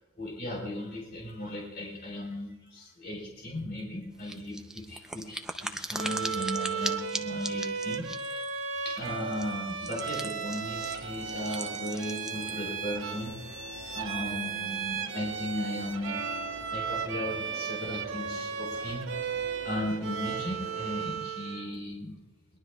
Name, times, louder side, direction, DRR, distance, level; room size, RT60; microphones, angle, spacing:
voice 1, 0.2-5.4 5.7-8.5 8.8-13.6 13.9-16.2 16.7-22.1, left 1 dB, 45° left, -3 dB, 4.4 m, -36 dB
sound 1, 4.3-12.6, right 1 dB, 5° right, 0.6 m, -39 dB
Bowed string instrument, 5.9-21.7, right 6 dB, 55° right, 0.9 m, -35 dB
sound 2, 10.5-21.0, right 1 dB, 90° right, 2.2 m, -46 dB
22.0 x 21.0 x 2.4 m, 0.99 s
head